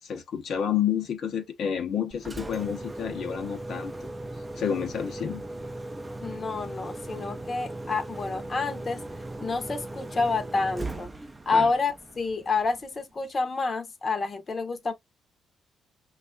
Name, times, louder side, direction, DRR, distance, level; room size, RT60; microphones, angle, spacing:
voice 1, 0.0-4.1 4.6-5.4 11.5-11.7, left 8 dB, 65° left, 0.7 m, -30 dB
Engine, 2.1-13.0, right 2 dB, 20° right, 0.4 m, -38 dB
voice 2, 6.2-9.0 9.4-11.1 11.5-14.9, left 4 dB, 35° left, 0.7 m, -28 dB
5.2 x 2.3 x 2.2 m
cardioid pair, 90°, 0 cm